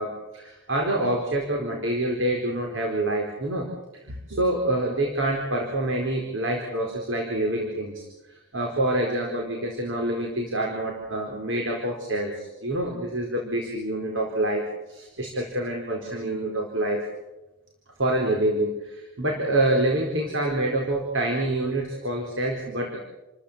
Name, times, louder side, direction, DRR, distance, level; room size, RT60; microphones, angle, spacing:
voice 1, 0.0-3.7 4.0-8.0 8.5-14.6 14.9-17.0 18.0-23.0, right 1 dB, 85° right, 1 dB, 4.4 m, -26 dB
29.5 x 14.0 x 8.7 m, 1.0 s
head